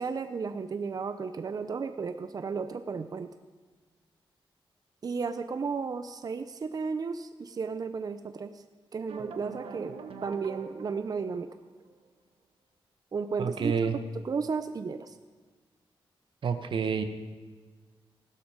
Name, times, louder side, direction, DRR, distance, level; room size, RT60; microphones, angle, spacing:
voice 1, 0.0-3.3 5.0-8.6 8.9-9.9 10.2-11.6 13.1-13.7 14.1-15.2, right 5 dB, 45° right, 10 dB, 0.6 m, -33 dB
sound 1, 9.1-11.8, right 5 dB, 90° right, 1.3 m, -44 dB
voice 2, 13.4-14.0 16.4-17.0, right 6 dB, 65° right, 8 dB, 1.2 m, -28 dB
16.5 x 12.5 x 5.1 m, 1.4 s
wide cardioid pair, 115°, 9 cm